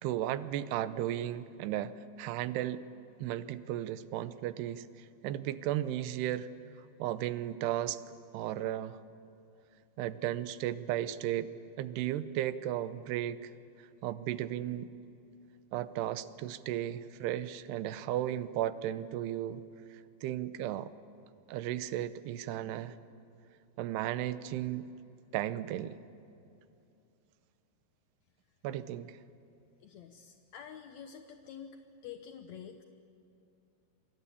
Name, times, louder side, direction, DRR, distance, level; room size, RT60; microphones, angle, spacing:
voice 1, 0.0-2.8 3.2-4.9 5.2-6.5 7.0-8.0 8.3-9.0 10.0-11.5 11.8-13.5 14.0-14.9 15.7-19.6 20.2-20.9 21.5-23.0 23.8-24.9 25.3-26.0 28.6-29.2, right 12 dB, 90° right, 14 dB, 2.9 m, -35 dB
voice 2, 29.8-31.8 32.0-32.8, left 8 dB, 75° left, 6 dB, 1.6 m, -48 dB
28.0 x 24.0 x 8.4 m, 2.6 s
omnidirectional pair, 4.6 m